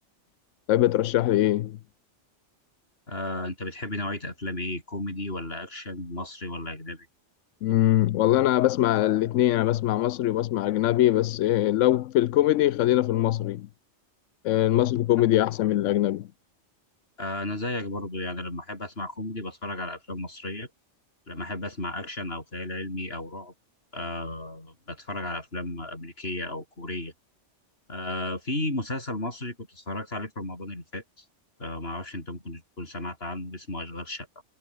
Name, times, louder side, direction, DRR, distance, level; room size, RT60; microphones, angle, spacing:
voice 1, 0.7-1.8 7.6-13.7 14.4-16.3, left 14 dB, 90° left, 0.9 m, -22 dB
voice 2, 3.1-7.1 17.2-20.7 21.3-23.5 23.9-27.1 27.9-31.2 31.6-34.4, left 1 dB, 55° left, 6.0 m, -34 dB
omnidirectional pair, 1.2 m